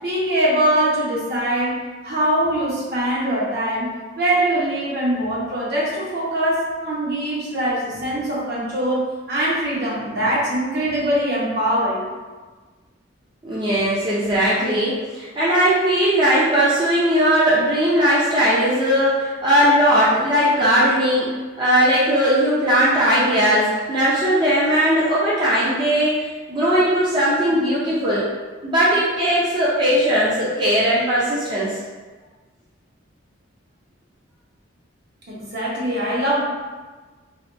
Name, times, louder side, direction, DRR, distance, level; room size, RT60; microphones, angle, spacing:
voice 1, 0.0-12.1 35.3-36.4, right 1 dB, 55° right, -6 dB, 0.9 m, -22 dB
voice 2, 13.4-21.3 21.6-28.2 28.6-31.7, equal, 25° right, -9 dB, 0.5 m, -18 dB
3.3 x 2.2 x 2.5 m, 1.4 s
head